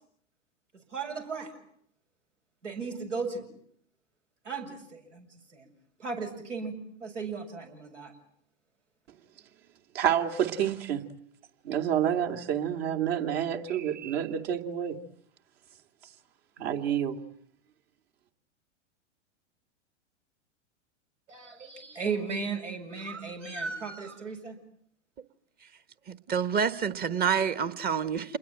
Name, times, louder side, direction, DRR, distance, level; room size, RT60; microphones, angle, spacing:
voice 1, 0.9-1.6 2.6-3.4 4.4-5.7 6.0-8.2 21.3-24.6, right 4 dB, 85° right, 7.3 m, -36 dB
voice 2, 9.9-11.0 11.6-15.0 16.6-17.2, right 9 dB, 55° right, 2.8 m, -28 dB
voice 3, 26.1-28.4, right 7 dB, 25° right, 1.4 m, -28 dB
28.5 x 21.5 x 9.0 m
hypercardioid pair, 105°, 36 cm